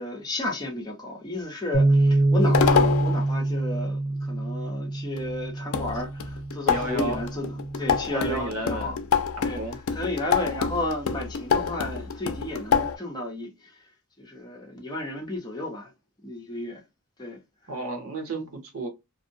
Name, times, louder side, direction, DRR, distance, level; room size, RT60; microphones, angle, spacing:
voice 1, 0.0-9.0 9.4-9.6 9.9-13.8 14.2-15.9 16.2-16.8 17.2-17.4, left 2 dB, 20° left, 0.6 m, -33 dB
sound 1, 1.7-8.0, right 2 dB, 25° right, 0.5 m, -25 dB
sound 2, 2.4-3.2 5.2-5.3 5.7-13.0, left 6 dB, 80° left, 0.4 m, -26 dB
voice 2, 6.7-7.2 8.1-9.0 9.4-9.8 17.7-18.9, right 2 dB, 80° right, 0.9 m, -32 dB
2.6 x 2.0 x 2.6 m
head